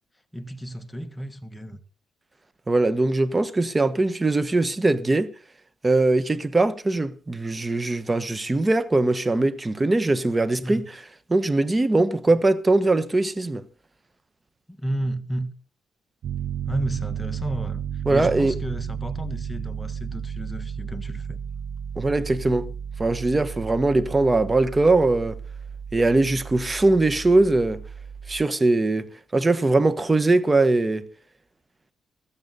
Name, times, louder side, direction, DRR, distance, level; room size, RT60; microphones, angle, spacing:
voice 1, 0.3-1.8 10.6-10.9 14.7-15.5 16.7-17.8 18.1-21.4, equal, 10° left, 1.5 m, -32 dB
voice 2, 2.7-5.3 5.8-10.8 11.3-13.6 18.1-18.6 22.0-22.7 23.0-25.4 25.9-27.8 28.3-31.1, right 2 dB, 20° right, 1.1 m, -21 dB
Piano, 16.2-28.4, right 8 dB, 65° right, 0.6 m, -33 dB
16.0 x 13.0 x 4.0 m
cardioid pair, 90°, 0 cm